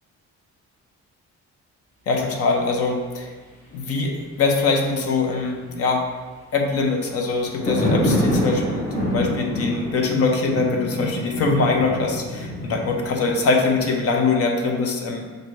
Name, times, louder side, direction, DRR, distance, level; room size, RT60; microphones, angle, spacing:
voice 1, 2.1-3.3 3.7-6.1 6.5-15.2, left 3 dB, 55° left, 2 dB, 0.7 m, -22 dB
sound 1, 7.3-14.4, left 1 dB, 25° left, 1.1 m, -26 dB
6.4 x 2.6 x 3.1 m, 1.3 s
cardioid pair, 165°, 29 cm